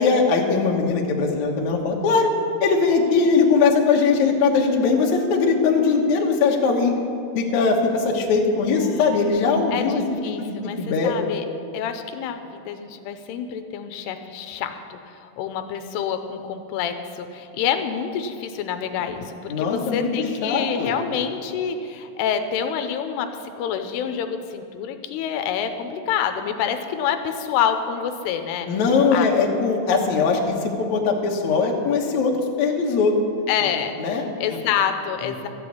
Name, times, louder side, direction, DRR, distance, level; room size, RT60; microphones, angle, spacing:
voice 1, 0.0-2.3 2.6-6.9 7.4-10.0 10.4-11.2 19.5-20.1 20.4-20.9 28.7-33.1 34.0-34.2, left 4 dB, 60° left, 0 dB, 2.2 m, -20 dB
voice 2, 8.8-9.2 9.7-10.8 11.0-11.5 11.7-28.7 29.1-29.3 33.5-34.0 34.4-35.5, left 8 dB, 85° left, 8 dB, 2.8 m, -27 dB
13.5 x 7.9 x 8.5 m, 2.6 s
omnidirectional pair, 4.7 m